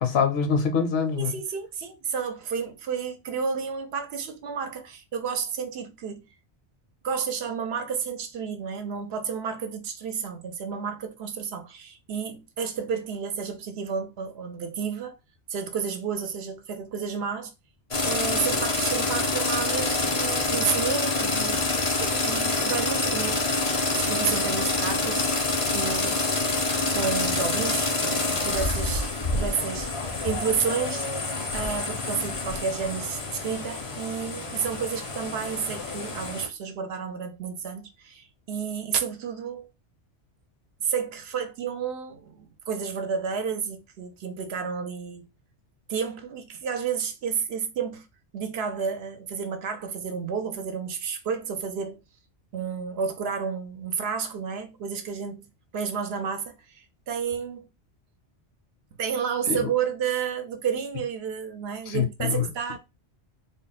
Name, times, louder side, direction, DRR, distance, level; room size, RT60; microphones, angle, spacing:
voice 1, 0.0-1.4 59.5-59.6 61.9-62.5, left 6 dB, 65° left, 0.9 m, -24 dB
voice 2, 1.2-6.3 7.0-15.2 15.5-17.5 18.0-21.6 22.0-23.4 24.0-25.2 25.7-26.3 26.9-29.9 30.2-31.1 31.5-39.7 40.8-45.3 45.9-48.1 48.3-52.0 52.5-55.5 55.7-57.7 59.0-62.8, right 6 dB, 70° right, 0.8 m, -31 dB
sound 1, 17.9-36.5, left 3 dB, 35° left, 0.6 m, -27 dB
3.6 x 2.1 x 3.9 m
omnidirectional pair, 1.1 m